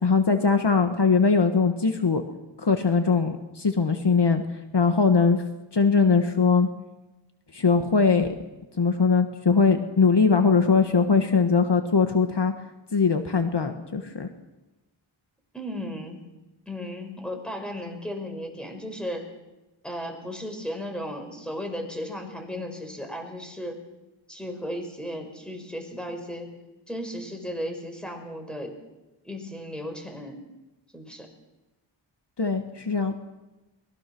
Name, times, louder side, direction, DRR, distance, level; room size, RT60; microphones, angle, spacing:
voice 1, 0.0-2.2 2.6-4.4 4.7-5.4 5.7-6.7 7.5-8.3 8.8-12.5 12.9-14.3 32.4-33.1, left 5 dB, 60° left, 6 dB, 1.7 m, -21 dB
voice 2, 15.5-16.3 16.7-19.3 19.8-23.8 24.3-26.6 26.9-28.8 29.2-30.4 30.9-31.3, equal, ahead, 4 dB, 5.4 m, -35 dB
24.0 x 21.0 x 6.2 m, 1.1 s
wide cardioid pair, 55°, 47 cm